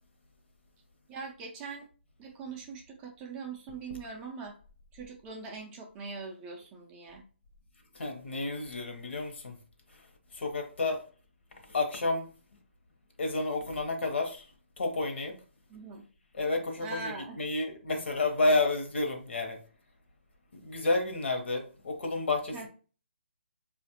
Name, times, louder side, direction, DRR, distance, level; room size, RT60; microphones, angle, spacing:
voice 1, 1.1-1.9 2.2-4.5 4.9-7.2 15.7-16.0 16.8-17.4 22.5-22.7, right 4 dB, 15° right, 0.4 m, -42 dB
voice 2, 7.9-9.6 10.3-11.0 11.7-12.3 13.2-14.5 14.8-15.4 16.3-19.6 20.5-22.7, left 2 dB, 65° left, 1.0 m, -30 dB
4.1 x 2.5 x 2.7 m
hypercardioid pair, 155°, 7 cm